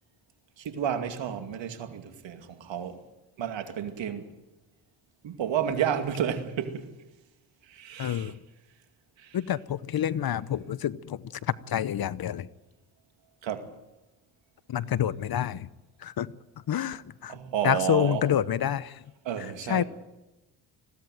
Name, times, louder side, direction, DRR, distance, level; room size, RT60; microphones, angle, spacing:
voice 1, 0.6-3.0 3.4-4.3 5.2-6.9 7.6-8.4 9.2-9.4 13.4-13.7 17.3-18.3 19.2-19.8, right 9 dB, 70° right, 2.5 m, -31 dB
voice 2, 8.0-8.3 9.3-11.2 11.7-12.5 14.7-15.7 16.0-16.3 16.7-17.3 17.6-18.9 19.7-19.8, left 10 dB, 50° left, 0.9 m, -27 dB
21.0 x 16.5 x 9.2 m
supercardioid pair, 55°, 47 cm